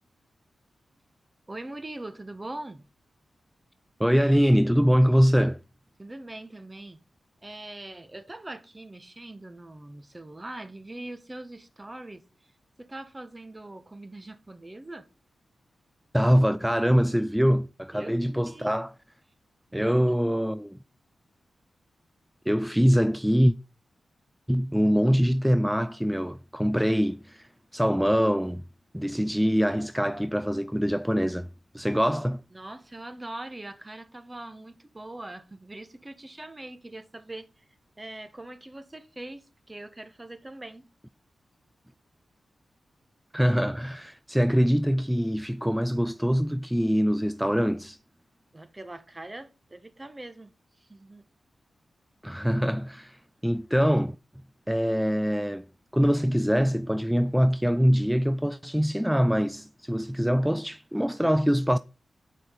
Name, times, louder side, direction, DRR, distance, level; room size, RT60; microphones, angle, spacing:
voice 1, 1.5-2.8 6.0-7.0 7.4-12.5 12.8-15.1 17.9-18.7 19.7-20.2 32.5-37.6 38.0-40.9 48.5-51.2, right 2 dB, 25° right, 1.5 m, -42 dB
voice 2, 4.0-5.6 16.1-18.9 19.7-20.8 22.5-23.5 24.5-28.6 28.9-31.5 31.7-32.4 43.3-48.0 52.2-54.2 54.7-55.6 55.9-61.8, equal, 5° right, 0.4 m, -24 dB
8.2 x 5.8 x 5.2 m
supercardioid pair, 40°, 0 cm